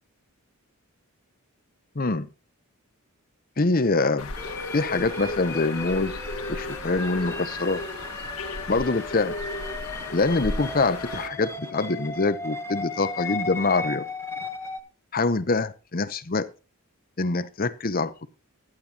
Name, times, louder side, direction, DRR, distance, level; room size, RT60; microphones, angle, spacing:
voice 1, 1.9-2.3 3.6-4.3 4.7-6.2 6.5-7.8 8.7-9.4 10.1-14.0 15.1-16.5 17.2-18.3, left 3 dB, 40° left, 14 dB, 0.8 m, -25 dB
Bird, 4.2-11.3, left 2 dB, 80° left, 1.6 m, -35 dB
sound 1, 4.4-14.8, left 3 dB, 10° left, 1.0 m, -36 dB
16.0 x 11.5 x 2.9 m, 0.31 s
head